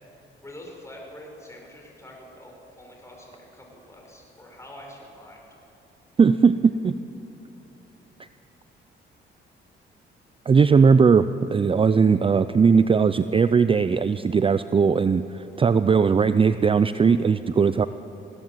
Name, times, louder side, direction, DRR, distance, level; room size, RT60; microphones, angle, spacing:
voice 1, 0.4-5.4, left 1 dB, 15° left, -1 dB, 6.1 m, -45 dB
voice 2, 6.2-6.9 10.5-17.9, right 5 dB, 25° right, 13 dB, 0.5 m, -19 dB
21.0 x 17.0 x 7.4 m, 3.0 s
cardioid pair, 90°, 20 cm